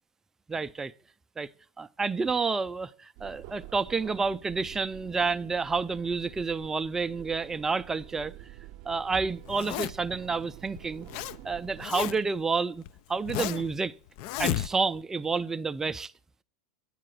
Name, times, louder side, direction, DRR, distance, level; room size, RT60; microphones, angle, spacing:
voice 1, 0.5-0.9 1.4-1.5 1.8-8.3 8.9-11.1 11.4-12.8 13.1-13.9 14.4-16.1, right 4 dB, 15° right, 0.4 m, -29 dB
sound 1, 3.2-11.9, right 15 dB, 50° right, 0.7 m, -48 dB
Zipper (clothing), 9.5-10.2 10.8-11.4 11.6-12.4 12.8-13.7 14.2-15.0, left 13 dB, 55° left, 0.4 m, -33 dB
8.7 x 4.5 x 6.1 m
hypercardioid pair, 90°, 3 cm